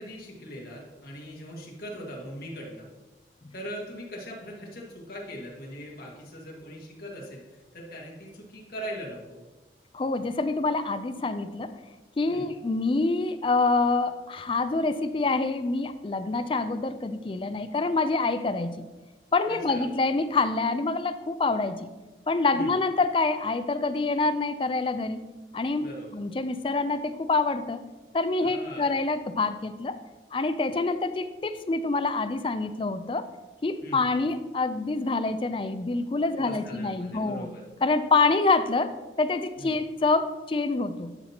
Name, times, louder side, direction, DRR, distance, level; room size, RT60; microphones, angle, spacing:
voice 1, 0.0-2.9 3.5-9.4 12.3-12.5 19.5-19.9 22.5-22.7 25.8-26.2 28.4-28.9 33.8-34.0 36.3-37.6 39.6-39.8, equal, 55° left, -3 dB, 1.7 m, -40 dB
voice 2, 9.9-11.8 12.2-18.7 19.3-21.9 22.3-27.8 28.1-30.0 30.3-33.3 33.6-37.5 37.8-41.1, left 3 dB, 30° left, 11 dB, 0.3 m, -26 dB
11.5 x 5.7 x 2.9 m, 1.2 s
head